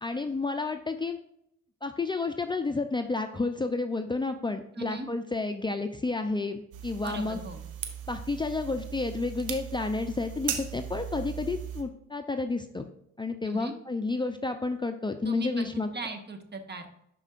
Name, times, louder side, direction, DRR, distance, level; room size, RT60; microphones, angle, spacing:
voice 1, 0.0-1.2 1.8-7.4 8.1-12.9 13.2-15.9, left 3 dB, 15° left, 6 dB, 0.6 m, -31 dB
voice 2, 4.7-5.1 7.0-7.6 13.4-13.7 15.2-16.9, right 3 dB, 35° right, 5 dB, 1.5 m, -38 dB
sound 1, 6.7-11.8, right 9 dB, 90° right, 1.0 m, -38 dB
11.0 x 4.6 x 2.5 m, 0.74 s
cardioid pair, 75°, 30 cm